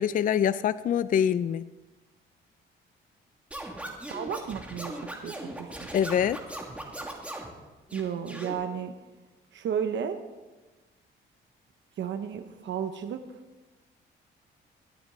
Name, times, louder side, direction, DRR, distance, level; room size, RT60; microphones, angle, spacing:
voice 1, 0.0-1.7 5.9-6.4, left 9 dB, 45° left, 16 dB, 0.4 m, -25 dB
Scratching (performance technique), 3.5-7.5 7.9-8.5, right 1 dB, 5° right, 2.6 m, -39 dB
voice 2, 4.1-5.7 7.9-8.9 9.5-10.2 12.0-13.2, right 8 dB, 65° right, 8 dB, 1.0 m, -33 dB
22.0 x 8.7 x 4.2 m, 1.2 s
cardioid pair, 90°, 20 cm